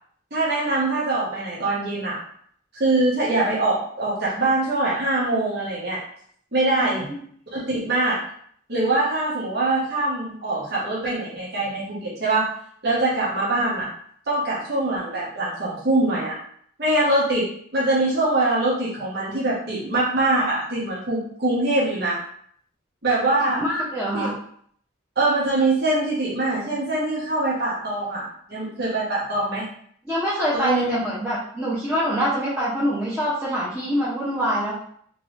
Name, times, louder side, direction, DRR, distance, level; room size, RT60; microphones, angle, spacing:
voice 1, 0.3-2.2 2.7-6.0 6.5-7.1 7.5-8.2 8.7-12.4 12.8-13.9 14.3-16.3 16.8-17.5 17.7-22.2 23.0-23.6 24.1-24.3 25.2-29.6 30.5-31.0, right 2 dB, 55° right, -8 dB, 1.1 m, -23 dB
voice 2, 23.6-24.3 30.1-34.8, equal, 5° right, -10 dB, 0.8 m, -25 dB
3.7 x 3.1 x 3.2 m, 0.63 s
head